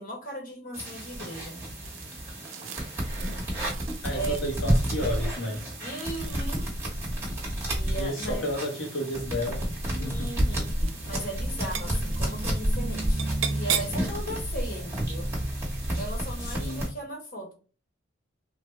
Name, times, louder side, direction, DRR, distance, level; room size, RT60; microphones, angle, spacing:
voice 1, 0.0-1.6 4.1-4.4 5.8-6.7 7.7-8.4 10.0-10.8 11.0-15.3 15.9-17.5, right 1 dB, 40° left, 1.0 m, -37 dB
sound 1, 0.7-16.9, right 1 dB, 15° right, 1.0 m, -30 dB
sound 2, 1.9-6.9 8.1-8.7 9.4-9.9 10.1-10.6 10.8-11.3 11.5-12.2 13.2-14.1, right 9 dB, 70° right, 0.4 m, -37 dB
voice 2, 4.0-5.7 7.9-11.0 16.4-16.9, left 1 dB, 65° left, 0.7 m, -33 dB
3.3 x 2.0 x 3.0 m
head